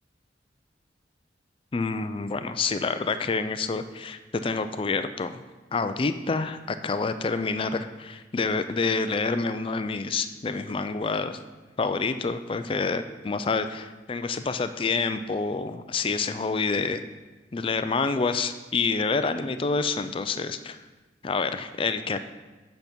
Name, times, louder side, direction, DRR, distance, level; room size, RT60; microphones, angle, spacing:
voice 1, 1.7-5.4 5.7-11.4 11.8-17.0 17.5-20.8 21.2-22.3, left 4 dB, 30° left, 10 dB, 0.4 m, -28 dB
8.4 x 5.9 x 5.2 m, 1.2 s
head